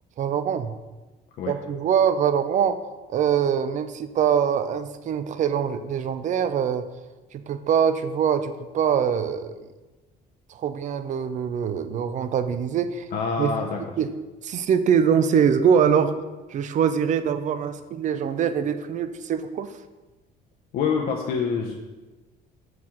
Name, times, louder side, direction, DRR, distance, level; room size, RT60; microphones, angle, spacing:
voice 1, 0.2-0.7 1.5-2.8 3.1-6.9 7.3-9.6 10.5-13.1 13.4-13.5 14.0-14.1 14.4-16.1 16.5-19.7, right 8 dB, 45° right, 11 dB, 0.4 m, -23 dB
voice 2, 13.1-13.8 20.7-21.7, left 5 dB, 65° left, 1 dB, 0.6 m, -26 dB
5.9 x 4.6 x 3.6 m, 1.2 s
cardioid pair, 110°, 17 cm